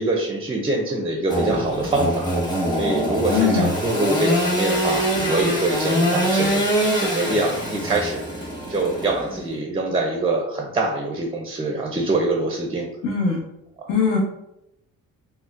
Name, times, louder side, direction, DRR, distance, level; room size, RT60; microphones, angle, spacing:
voice 1, 0.0-2.3 2.7-12.9 13.8-13.9, right 2 dB, 15° right, 1 dB, 0.5 m, -24 dB
Engine / Sawing, 1.3-9.5, equal, 15° left, 1.0 m, -24 dB
voice 2, 3.3-3.7 13.0-13.4 13.9-14.2, left 6 dB, 75° left, -4 dB, 1.0 m, -21 dB
4.0 x 2.1 x 2.5 m, 0.85 s
cardioid pair, 85°, 33 cm